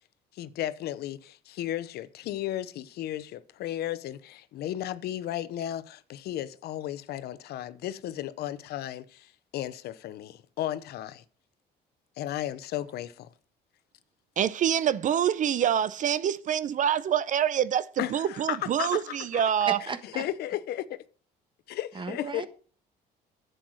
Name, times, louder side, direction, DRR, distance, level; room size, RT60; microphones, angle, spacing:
voice 1, 0.3-11.2 12.2-13.3 18.0-19.4 20.1-21.0 21.7-22.5, left 12 dB, 70° left, 0.8 m, -34 dB
voice 2, 14.4-19.8, right 9 dB, 50° right, 0.6 m, -26 dB
voice 3, 19.7-20.2 21.9-22.5, right 4 dB, 30° right, 1.4 m, -34 dB
10.5 x 7.9 x 6.3 m
cardioid pair, 110°, 17 cm